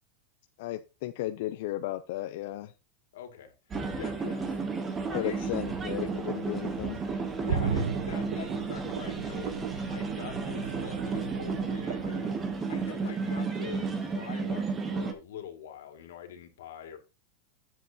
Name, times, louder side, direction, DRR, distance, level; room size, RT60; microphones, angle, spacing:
voice 1, 0.6-2.7 5.1-7.0, left 15 dB, 50° left, 8 dB, 0.5 m, -35 dB
voice 2, 3.1-4.6 5.1-5.5 7.4-17.0, left 9 dB, 80° left, 5 dB, 2.2 m, -44 dB
sound 1, 3.7-15.1, right 4 dB, 15° right, 0.8 m, -33 dB
sound 2, 7.5-13.3 13.7-13.8, right 6 dB, 80° right, 1.0 m, -36 dB
9.5 x 7.6 x 2.8 m, 0.28 s
supercardioid pair, 175°, 0 cm